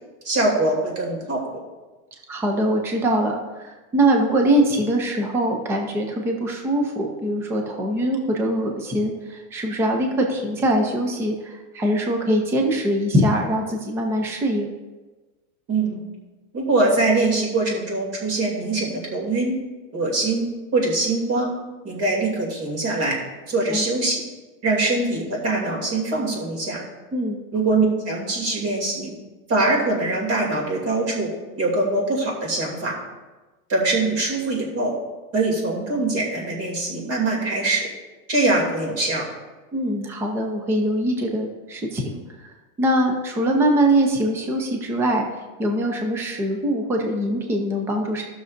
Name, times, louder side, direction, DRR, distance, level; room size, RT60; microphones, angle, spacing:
voice 1, 0.2-1.4 15.7-16.0 16.5-19.5 19.9-20.4 20.7-21.5 21.8-23.1 23.5-24.2 24.6-26.8 27.5-29.1 29.5-31.3 31.6-32.9 33.7-34.9 35.3-37.9 38.3-39.2, right 2 dB, 30° right, -1 dB, 2.7 m, -23 dB
voice 2, 2.3-14.7 23.7-23.8 27.1-27.4 39.7-42.5 42.8-45.3 45.6-48.2, right 1 dB, 5° right, 2 dB, 0.4 m, -22 dB
15.5 x 6.4 x 2.6 m, 1.2 s
supercardioid pair, 155°, 44 cm